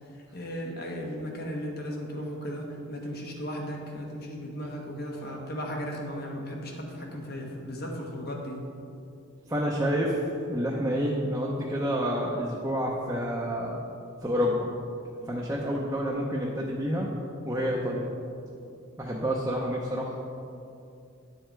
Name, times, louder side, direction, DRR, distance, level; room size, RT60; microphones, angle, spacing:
voice 1, 0.3-8.6, equal, 45° left, 0 dB, 1.3 m, -36 dB
voice 2, 9.5-10.2 10.5-13.8 14.2-14.7 15.3-17.1 17.4-18.1 19.0-20.2, equal, 15° right, -4 dB, 0.7 m, -28 dB
9.9 x 6.7 x 4.6 m, 2.6 s
head